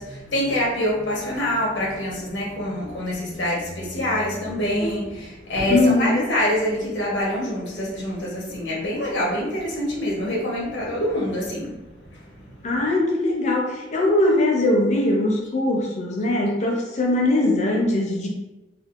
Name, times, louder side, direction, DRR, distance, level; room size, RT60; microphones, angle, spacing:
voice 1, 0.0-11.8 12.1-12.4, left 1 dB, 85° left, -3 dB, 1.0 m, -25 dB
voice 2, 5.7-6.3 12.6-18.3, left 1 dB, 40° left, 0 dB, 0.5 m, -21 dB
3.5 x 2.4 x 2.4 m, 1.0 s
head